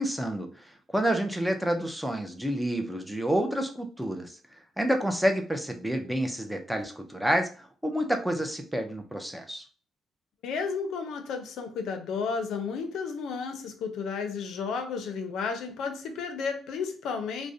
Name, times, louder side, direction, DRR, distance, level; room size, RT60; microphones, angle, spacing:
voice 1, 0.0-4.4 4.8-9.6, equal, 5° right, 5 dB, 0.4 m, -29 dB
voice 2, 10.4-17.5, left 5 dB, 80° left, 6 dB, 0.4 m, -32 dB
2.4 x 2.0 x 2.6 m, 0.39 s
cardioid pair, 90°, 0 cm